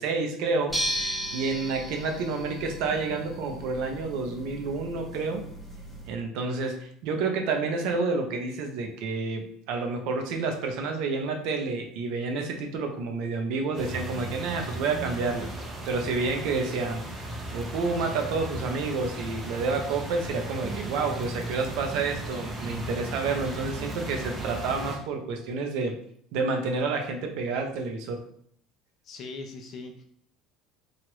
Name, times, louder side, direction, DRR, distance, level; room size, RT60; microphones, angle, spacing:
voice 1, 0.0-5.4 6.1-15.5 15.9-17.0 17.5-25.9 26.3-28.2, right 4 dB, 70° right, 3 dB, 0.6 m, -29 dB
sound 1, 0.7-6.1, equal, 5° right, 1.0 m, -35 dB
sound 2, 13.7-25.0, right 1 dB, 20° right, 0.6 m, -36 dB
voice 2, 29.0-30.0, left 3 dB, 40° left, 4 dB, 0.5 m, -40 dB
3.1 x 2.4 x 3.0 m, 0.64 s
cardioid pair, 150°, 0 cm